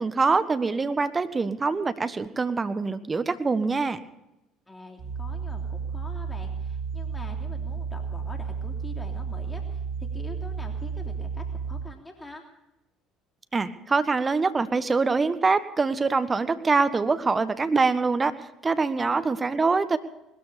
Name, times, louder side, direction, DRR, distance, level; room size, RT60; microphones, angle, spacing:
voice 1, 0.0-4.0 13.5-18.3 18.6-20.0, right 4 dB, 25° right, 11 dB, 1.4 m, -24 dB
voice 2, 4.7-12.4 18.9-19.4, left 1 dB, 15° left, 2 dB, 3.2 m, -44 dB
sound 1, 5.0-11.8, right 6 dB, 55° right, 7.3 m, -32 dB
20.5 x 13.5 x 5.2 m, 0.91 s
hypercardioid pair, 60°, 0 cm